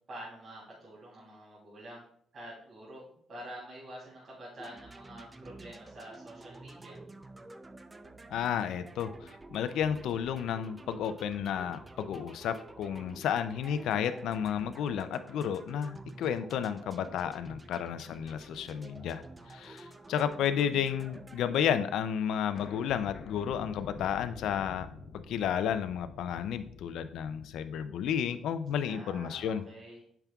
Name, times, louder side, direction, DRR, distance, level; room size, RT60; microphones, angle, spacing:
voice 1, 0.0-2.1 2.3-7.0 28.9-30.0, right 1 dB, 50° right, -7 dB, 3.1 m, -47 dB
sound 1, 4.6-21.8, right 2 dB, 20° right, 0.5 m, -50 dB
voice 2, 8.3-19.2 19.5-24.9 25.1-29.6, left 8 dB, 80° left, 11 dB, 0.4 m, -32 dB
sound 2, 14.8-16.9 17.4-17.5 19.0-19.4 19.6-21.0 21.3-21.4 21.6-21.7 22.0-22.1 22.5-29.2, left 4 dB, 65° left, 0.8 m, -49 dB
8.8 x 5.9 x 2.4 m, 0.65 s
cardioid pair, 90°, 0 cm